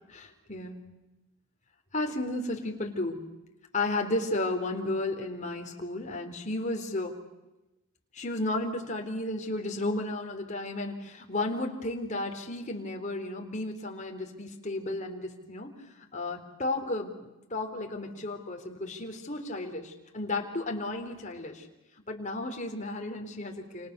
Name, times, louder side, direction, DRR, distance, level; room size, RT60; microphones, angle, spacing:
voice 1, 0.1-0.9 1.9-3.2 3.7-7.2 8.1-17.2 17.5-21.7 22.1-23.9, left 2 dB, 35° left, 3 dB, 4.0 m, -33 dB
29.0 x 29.0 x 6.9 m, 0.99 s
head